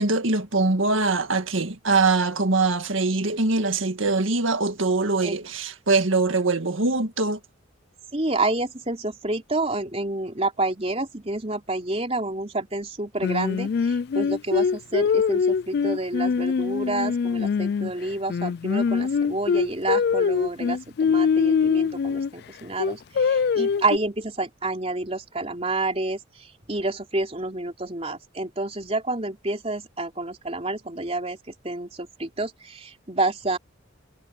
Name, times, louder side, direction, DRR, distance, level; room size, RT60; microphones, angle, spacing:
voice 1, 0.0-7.4, right 3 dB, 80° right, 1.8 m, -23 dB
voice 2, 8.1-31.4 31.6-33.6, right 2 dB, 30° right, 3.8 m, -29 dB
Singing, 13.2-17.9 18.3-22.3 22.8-24.0, left 6 dB, 55° left, 0.3 m, -23 dB
head